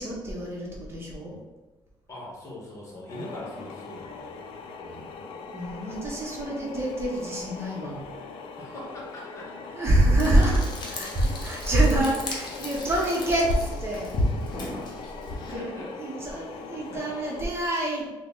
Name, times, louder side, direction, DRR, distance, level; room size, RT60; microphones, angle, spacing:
voice 1, 0.0-1.4 5.5-8.1 9.7-15.0 15.5-18.1, right 1 dB, 30° right, -3 dB, 0.8 m, -26 dB
voice 2, 2.1-4.3 4.8-5.2 8.6-9.8 12.6-12.7 15.3-16.0 16.9-17.0, left 1 dB, 35° left, -3 dB, 1.1 m, -42 dB
sound 1, 3.1-17.4, left 4 dB, 75° left, 0.4 m, -41 dB
Frying (food), 10.2-15.5, left 1 dB, 55° left, 0.8 m, -33 dB
3.6 x 2.1 x 3.6 m, 1.2 s
cardioid pair, 110°, 9 cm